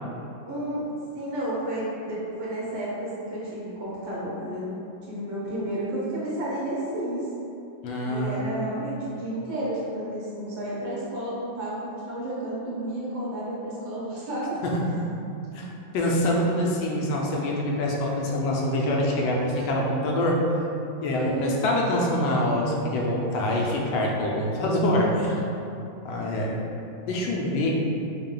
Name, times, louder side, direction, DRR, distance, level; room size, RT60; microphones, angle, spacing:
voice 1, 0.5-0.9 1.1-4.7 5.1-7.3 8.0-14.6 21.1-21.7 23.5-23.6 26.2-26.4, right 1 dB, 75° right, -8 dB, 1.8 m, -31 dB
voice 2, 7.8-8.4 14.6-14.7 15.5-15.7 15.9-20.4 21.0-25.3 26.0-26.6 27.0-27.8, left 1 dB, 80° left, -2 dB, 1.4 m, -25 dB
4.1 x 2.2 x 3.7 m, 2.8 s
omnidirectional pair, 2.2 m